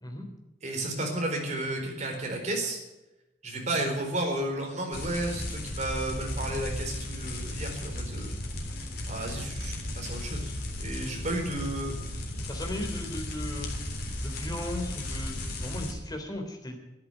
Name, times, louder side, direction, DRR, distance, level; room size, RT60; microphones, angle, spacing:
voice 1, 0.6-2.8 3.4-8.3 9.1-11.9, right 1 dB, 40° right, 1 dB, 4.3 m, -32 dB
sound 1, 4.9-15.9, left 1 dB, 55° left, 3.5 m, -35 dB
voice 2, 12.5-13.7 14.2-16.8, left 1 dB, 20° left, 3 dB, 3.3 m, -36 dB
13.0 x 11.0 x 9.2 m, 1.0 s
head